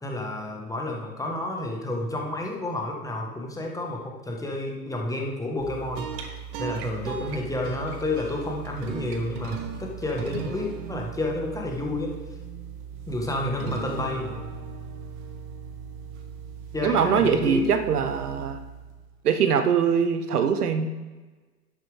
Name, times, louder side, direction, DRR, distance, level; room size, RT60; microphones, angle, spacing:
voice 1, 0.0-6.1 6.6-12.2 13.1-14.4 16.7-17.7, left 2 dB, 5° left, 0 dB, 1.6 m, -30 dB
sound 1, 5.6-19.2, right 7 dB, 40° right, 1.5 m, -38 dB
voice 2, 16.8-18.6 19.2-20.9, right 7 dB, 65° right, 8 dB, 1.0 m, -22 dB
11.0 x 8.9 x 3.6 m, 1.3 s
figure-of-eight pair, 100°, 50 cm